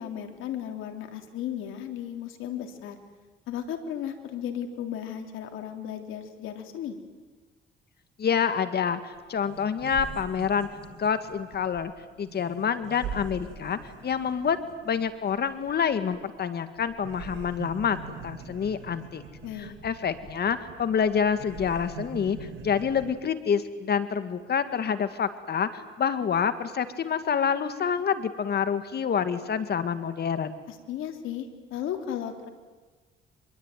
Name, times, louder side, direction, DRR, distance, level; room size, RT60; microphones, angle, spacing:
voice 1, 0.0-3.0 3.5-7.0 19.4-19.8 30.7-32.5, left 9 dB, 90° left, 5 dB, 3.4 m, -35 dB
voice 2, 8.2-10.7 11.0-11.9 12.2-14.6 14.8-19.2 19.6-30.6, left 7 dB, 55° left, 10 dB, 2.1 m, -27 dB
sound 1, 9.1-9.2 9.4-16.5 16.8-23.1, right 5 dB, 80° right, 6.6 m, -43 dB
26.5 x 22.0 x 9.3 m, 1.3 s
cardioid pair, 90°, 20 cm